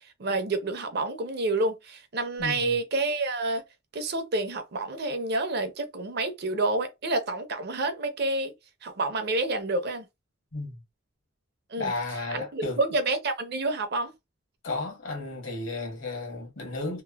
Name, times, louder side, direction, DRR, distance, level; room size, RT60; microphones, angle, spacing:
voice 1, 0.2-3.6 3.9-8.5 8.8-10.1 11.7-11.9 12.3-14.1, right 2 dB, 50° right, 0.6 m, -28 dB
voice 2, 2.4-2.8 10.5-10.8 11.8-12.8 14.6-17.0, left 2 dB, 65° left, 1.1 m, -33 dB
2.9 x 2.0 x 2.2 m
head